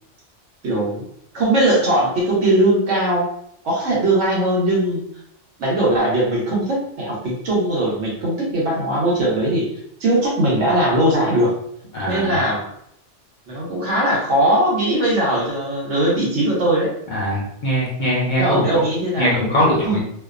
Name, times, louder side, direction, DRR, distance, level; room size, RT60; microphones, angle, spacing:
voice 1, 0.6-1.0 1.3-3.3 3.6-5.0 5.6-9.7 10.0-11.6 12.0-12.6 13.5-16.9 18.4-19.3 19.9-20.0, right 1 dB, 75° right, -4 dB, 1.2 m, -19 dB
voice 2, 11.9-12.3 17.1-18.7 19.2-20.0, equal, 55° left, -4 dB, 0.6 m, -21 dB
2.6 x 2.1 x 2.4 m, 0.72 s
omnidirectional pair, 1.2 m